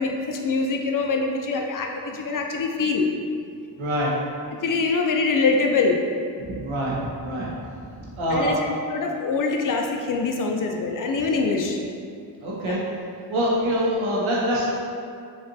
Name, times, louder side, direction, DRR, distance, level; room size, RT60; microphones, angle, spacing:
voice 1, 0.0-3.1 4.6-6.0 8.3-8.6 8.9-11.8 12.6-12.7, left 4 dB, 45° left, 2 dB, 0.4 m, -24 dB
voice 2, 3.8-4.1 6.5-7.0 7.2-7.5 8.2-8.5 12.4-12.8 13.3-14.7, equal, 90° right, -4 dB, 0.8 m, -24 dB
4.1 x 2.4 x 2.6 m, 2.3 s
cardioid pair, 65°, 46 cm